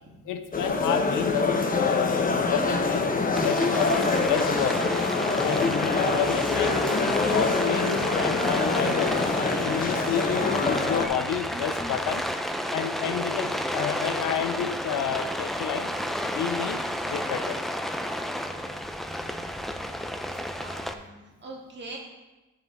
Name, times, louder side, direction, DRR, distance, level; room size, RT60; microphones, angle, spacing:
voice 1, 0.3-3.1 3.4-4.8 5.4-9.2 9.6-12.2 12.7-15.9 16.3-16.8 17.1-17.6, left 8 dB, 90° left, 8 dB, 0.8 m, -30 dB
sound 1, 0.5-11.1, left 3 dB, 30° left, 1.0 m, -25 dB
Rain, 3.4-20.9, equal, ahead, 0.6 m, -31 dB
voice 2, 20.6-22.0, right 2 dB, 35° right, -1 dB, 2.2 m, -42 dB
8.7 x 6.2 x 4.1 m, 1.1 s
cardioid pair, 90°, 30 cm